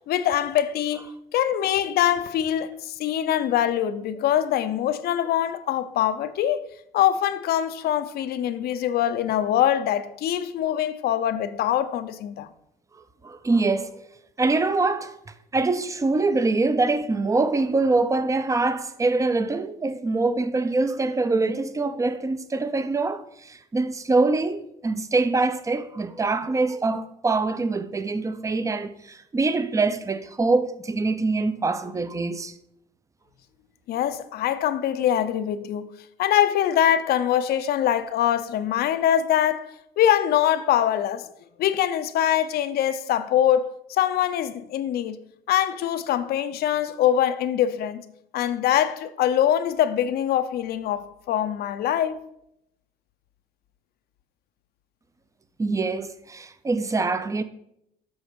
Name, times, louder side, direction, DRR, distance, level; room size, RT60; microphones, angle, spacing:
voice 1, 0.1-1.0 1.3-6.6 6.9-12.5 33.9-35.9 36.2-41.3 41.6-45.2 45.5-48.0 48.3-52.2, left 11 dB, 65° left, 0.6 m, -23 dB
voice 2, 13.2-13.9 14.4-15.2 15.5-32.5 55.6-57.4, right 3 dB, 20° right, 0.6 m, -24 dB
8.0 x 5.5 x 5.2 m
cardioid pair, 110°, 17 cm